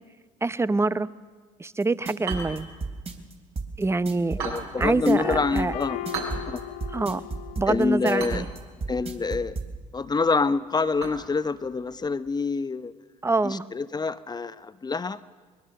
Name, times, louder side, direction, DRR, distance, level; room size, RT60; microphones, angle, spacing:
voice 1, 0.4-1.1 1.6-2.7 3.8-4.4 4.8-5.7 6.9-7.2 7.6-8.4 13.2-13.6, right 3 dB, 15° right, 16 dB, 0.8 m, -25 dB
sound 1, 1.8-9.7, right 4 dB, 35° right, 3.2 m, -33 dB
sound 2, 2.2-12.3, right 4 dB, 65° right, 7.2 m, -41 dB
voice 2, 4.4-6.0 6.5-6.6 7.7-8.4 8.9-9.6 9.9-12.9 13.4-15.2, left 4 dB, 25° left, 14 dB, 0.8 m, -26 dB
sound 3, 5.0-7.8, left 11 dB, 80° left, 1.7 m, -36 dB
24.5 x 21.0 x 6.6 m, 1.5 s
hypercardioid pair, 60°, 18 cm